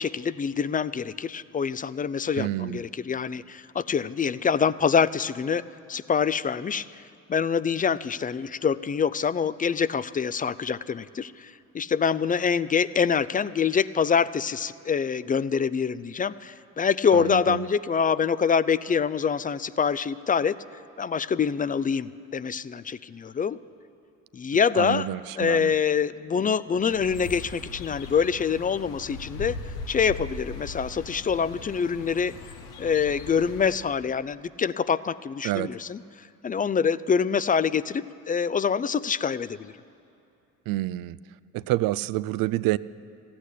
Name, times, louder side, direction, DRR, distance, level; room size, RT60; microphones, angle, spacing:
voice 1, 0.0-6.9 7.3-20.6 21.0-23.6 24.3-25.1 25.4-29.6 29.9-32.3 32.8-36.0 36.4-39.7, left 6 dB, 25° left, 17 dB, 0.4 m, -25 dB
voice 2, 2.4-2.8 17.1-17.7 24.7-25.7 35.4-35.7 40.7-41.2 41.5-42.8, right 17 dB, 65° right, 18 dB, 0.5 m, -28 dB
sound 1, 26.9-33.8, left 3 dB, 80° left, 1.2 m, -39 dB
15.0 x 8.6 x 10.0 m, 2.6 s
hypercardioid pair, 65°, 37 cm